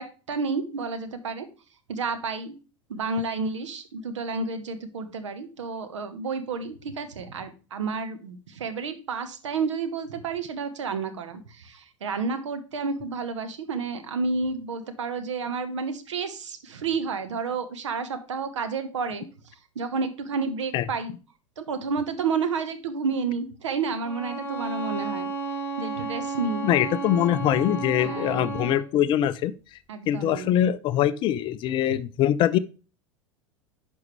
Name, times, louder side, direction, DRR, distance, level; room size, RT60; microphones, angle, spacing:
voice 1, 0.0-1.5 1.9-2.6 2.9-21.1 21.6-25.3 25.8-26.6 28.0-28.5 29.9-30.5 31.9-32.0, right 4 dB, 65° right, 1.1 m, -30 dB
Bowed string instrument, 24.0-28.9, right 3 dB, 10° left, 1.4 m, -32 dB
voice 2, 26.6-29.5 30.1-32.6, left 11 dB, 30° left, 0.4 m, -23 dB
10.5 x 5.2 x 3.2 m
figure-of-eight pair, 85°, 16 cm